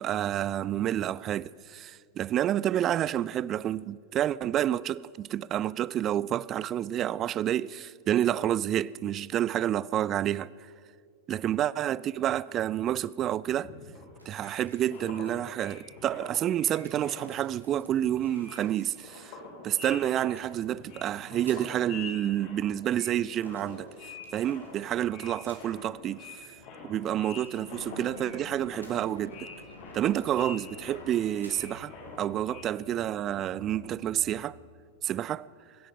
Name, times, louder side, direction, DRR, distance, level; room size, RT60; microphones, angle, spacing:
voice 1, 0.0-10.5 11.3-13.7 14.3-19.3 19.6-23.9 24.3-26.4 26.8-29.5 29.9-34.6 35.0-35.5, right 11 dB, 30° right, 0.3 m, -29 dB
sound 1, 13.6-17.6 17.9-32.6, left 4 dB, 45° left, 3.1 m, -46 dB
sound 2, 14.2-15.5 16.1-16.2 16.5-19.3 20.1-21.9 23.0-25.6 27.0-27.9 28.7-29.1 30.0-31.1 31.3-31.6 32.0-32.2, right 2 dB, 80° right, 2.4 m, -58 dB
sound 3, 17.3-34.4, left 2 dB, 80° left, 2.3 m, -52 dB
23.0 x 10.0 x 5.4 m
figure-of-eight pair, 90°, 0 cm